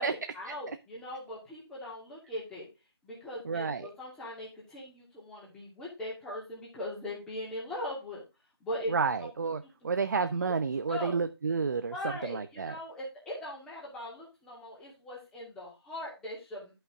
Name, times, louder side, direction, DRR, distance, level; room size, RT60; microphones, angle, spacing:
voice 1, 0.0-2.7 3.0-8.2 8.6-8.9 9.2-9.3 9.8-10.5 10.9-11.2 11.9-16.7, left 1 dB, 5° left, -5 dB, 2.4 m, -40 dB
voice 2, 3.4-3.9 8.9-12.8, right 5 dB, 40° right, 10 dB, 0.6 m, -30 dB
11.0 x 5.7 x 3.6 m, 0.26 s
figure-of-eight pair, 165°, 14 cm